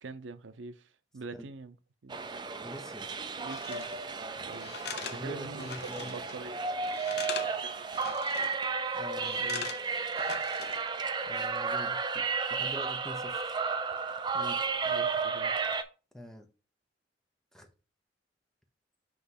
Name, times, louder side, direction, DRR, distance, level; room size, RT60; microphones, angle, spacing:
voice 1, 0.0-1.8 2.0-2.1 3.4-3.9 4.4-4.8 5.1-6.6 7.6-7.9 9.4-9.7 14.8-15.7, right 3 dB, 80° right, 0.6 m, -44 dB
sound 1, 2.1-15.8, right 5 dB, 25° right, 0.4 m, -33 dB
voice 2, 2.6-3.1 5.1-6.1 8.9-9.6 9.9-10.0 11.3-12.2 12.5-13.4 14.3-14.6 16.1-16.5 17.5-17.7, equal, 5° left, 0.8 m, -44 dB
sound 2, 3.5-4.0 4.5-6.4 6.6-7.6 7.9-8.7 9.2-10.9 11.2-11.5, left 7 dB, 55° left, 0.7 m, -42 dB
5.9 x 3.1 x 5.7 m
head